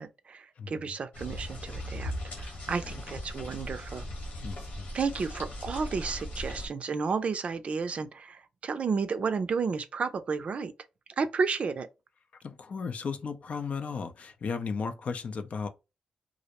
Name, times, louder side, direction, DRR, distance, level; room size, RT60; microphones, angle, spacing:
voice 1, 0.0-2.1 2.4-4.1 4.9-10.7 11.2-11.9, right 5 dB, 55° right, 0.4 m, -32 dB
voice 2, 0.6-0.9 2.8-3.0 4.4-4.9 12.4-15.7, left 5 dB, 60° left, 0.4 m, -35 dB
sound 1, 1.1-6.7, left 1 dB, 75° left, 1.1 m, -38 dB
2.5 x 2.0 x 2.8 m
cardioid pair, 65°, 3 cm